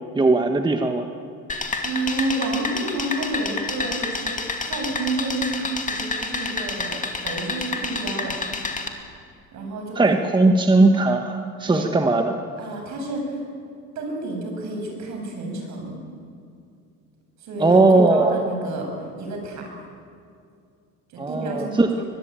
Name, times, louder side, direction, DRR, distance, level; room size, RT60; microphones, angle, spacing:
voice 1, 0.1-1.1 10.0-12.4 17.6-18.4 21.2-22.0, right 2 dB, 15° right, 5 dB, 1.3 m, -18 dB
sound 1, 1.5-8.9, left 3 dB, 25° left, 2.4 m, -29 dB
voice 2, 1.8-8.4 9.5-10.4 11.7-11.9 12.6-13.5 13.9-15.9 17.4-17.8 18.1-19.7 21.1-22.0, right 2 dB, 60° right, 2 dB, 7.7 m, -30 dB
23.0 x 20.5 x 9.0 m, 2.3 s
cardioid pair, 125°, 33 cm